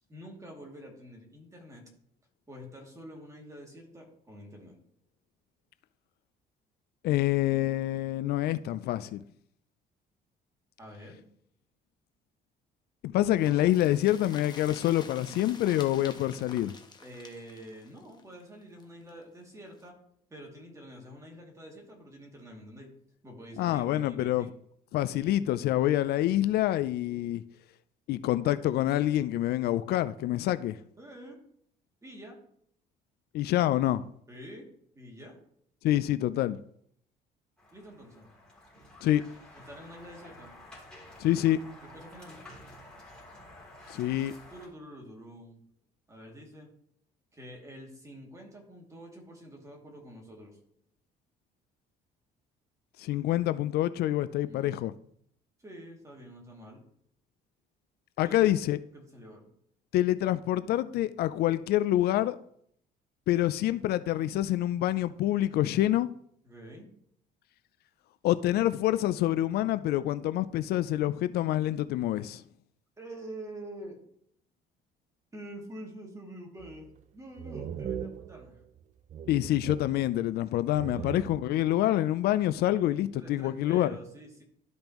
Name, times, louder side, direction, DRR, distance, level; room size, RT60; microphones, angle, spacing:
voice 1, 0.1-1.9 2.5-4.8 10.8-11.2 17.0-19.9 20.3-22.9 23.2-24.5 31.0-31.4 32.0-32.4 34.3-34.7 34.9-35.3 37.7-38.3 39.7-40.5 41.9-42.4 44.5-45.6 46.1-46.7 47.3-50.6 54.5-54.8 55.6-56.8 58.2-58.5 58.9-59.5 66.4-66.9 73.0-74.0 75.3-78.6 80.9-81.3 83.2-84.4, equal, 20° right, 2.5 m, -47 dB
voice 2, 7.0-9.2 13.0-16.7 23.6-24.5 24.9-27.4 28.1-30.8 33.3-34.0 35.8-36.6 39.0-39.2 41.2-41.6 43.9-44.3 53.0-54.9 58.2-58.8 59.9-62.4 63.3-66.1 68.2-72.4 79.3-83.9, left 14 dB, 70° left, 0.4 m, -26 dB
sound 1, 13.4-19.1 19.4-19.5 19.8-19.9, left 4 dB, 25° left, 1.1 m, -48 dB
sound 2, 37.6-44.7, left 1 dB, 5° left, 3.3 m, -51 dB
sound 3, 76.6-77.0 77.4-78.8 79.1-80.4 80.7-81.7, right 9 dB, 45° right, 0.5 m, -40 dB
12.5 x 5.2 x 3.0 m
cardioid pair, 110°, 17 cm